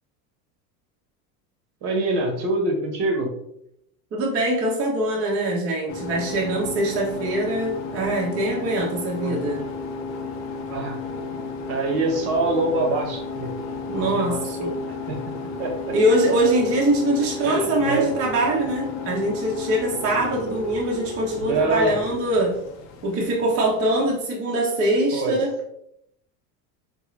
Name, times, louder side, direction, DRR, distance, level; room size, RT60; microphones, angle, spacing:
voice 1, 1.8-3.3 9.1-9.4 10.7-11.0 11.7-13.5 14.0-15.3 15.6-16.0 17.4-18.1 21.4-22.0 25.1-25.4, right 2 dB, 55° right, 2 dB, 1.1 m, -25 dB
voice 2, 4.1-9.6 13.9-14.7 15.9-22.6 23.0-25.5, right 1 dB, 30° right, -2 dB, 0.8 m, -23 dB
sound 1, 5.9-24.2, left 4 dB, 35° left, 0.5 m, -33 dB
3.9 x 2.2 x 3.1 m, 0.76 s
hypercardioid pair, 100°, 49 cm